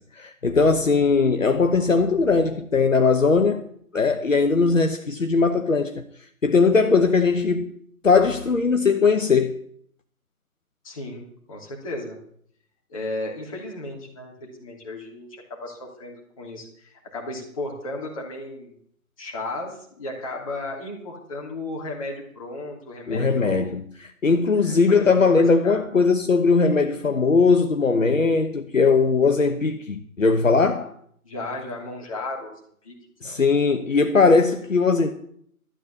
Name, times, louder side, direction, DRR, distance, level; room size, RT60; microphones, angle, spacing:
voice 1, 0.2-3.6 3.9-6.0 6.4-7.7 8.0-9.5 23.1-30.9 33.2-35.1, left 4 dB, 60° left, 1.2 m, -19 dB
voice 2, 10.8-12.2 12.9-18.7 19.2-23.7 24.6-25.8 31.2-33.0 33.2-33.4, left 2 dB, 25° left, 3.0 m, -35 dB
13.0 x 8.4 x 7.4 m
figure-of-eight pair, 155°, 44 cm